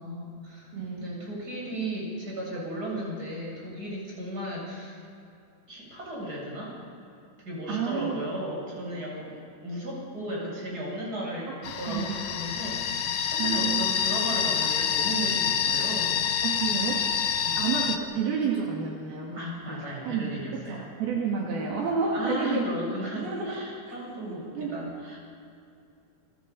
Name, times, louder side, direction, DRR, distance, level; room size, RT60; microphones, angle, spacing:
voice 1, 0.0-5.0 5.7-6.8 7.4-16.3 17.4-17.7 19.3-20.9 22.1-25.2, equal, 20° right, -3 dB, 8.3 m, -35 dB
voice 2, 0.7-1.1 7.7-8.2 11.5-11.6 11.9-12.1 13.4-14.0 16.4-19.4 19.7-20.4 20.7-22.7 23.1-23.6 24.5-24.9, right 6 dB, 70° right, -2 dB, 4.3 m, -30 dB
sound 1, 11.6-18.0, left 7 dB, 85° left, 1.3 m, -27 dB
29.0 x 26.0 x 5.6 m, 2.7 s
omnidirectional pair, 4.6 m